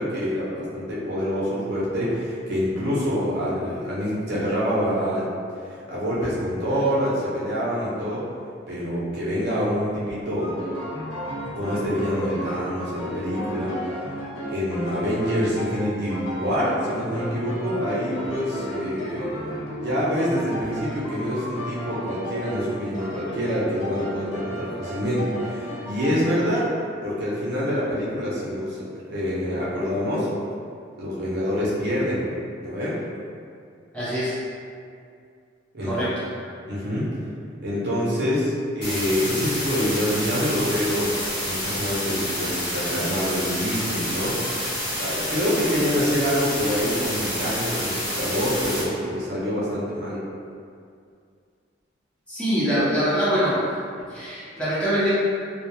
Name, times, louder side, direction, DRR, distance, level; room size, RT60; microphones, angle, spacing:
voice 1, 0.0-5.3 5.6-8.2 8.7-10.5 11.5-13.7 14.5-19.3 19.8-26.7 27.0-30.3 31.0-32.2 32.6-33.0 35.7-35.9 36.7-37.1 37.6-41.1 41.4-44.4 45.0-50.2, equal, 55° right, -8 dB, 0.6 m, -26 dB
sound 1, 10.4-26.5, equal, 75° left, 0.7 m, -34 dB
voice 2, 33.9-34.4 35.8-36.1 52.3-53.6 54.1-55.1, equal, 5° left, -12 dB, 0.8 m, -23 dB
sound 2, 38.8-48.8, equal, 55° left, 1.1 m, -28 dB
2.3 x 2.3 x 2.9 m, 2.3 s
head